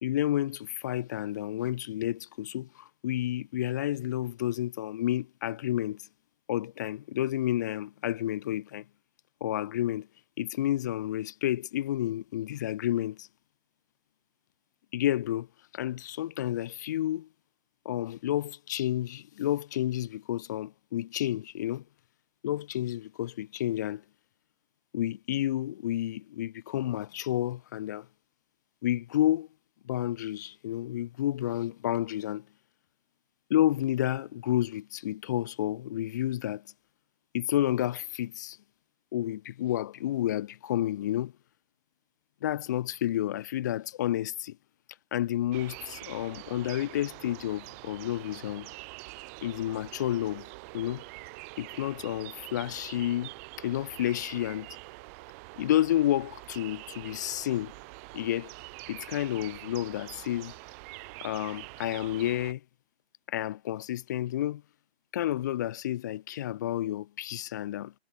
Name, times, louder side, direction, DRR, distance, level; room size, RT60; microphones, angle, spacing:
voice 1, 0.0-6.1 6.5-8.9 9.4-10.1 10.4-13.3 14.9-15.5 15.7-17.3 17.9-21.8 22.4-24.0 24.9-28.1 28.8-29.5 29.8-32.5 33.5-36.7 37.3-38.6 39.1-41.3 42.4-44.6 45.1-48.7 49.4-50.5 50.7-51.0 51.6-54.7 55.6-57.7 58.1-58.5 58.9-60.5 61.2-62.6 63.3-64.6 65.1-67.9, left 13 dB, 15° left, 1.9 m, -30 dB
sound 1, 45.5-62.5, right 29 dB, 15° right, 5.1 m, -45 dB
hypercardioid pair, 175°, 33 cm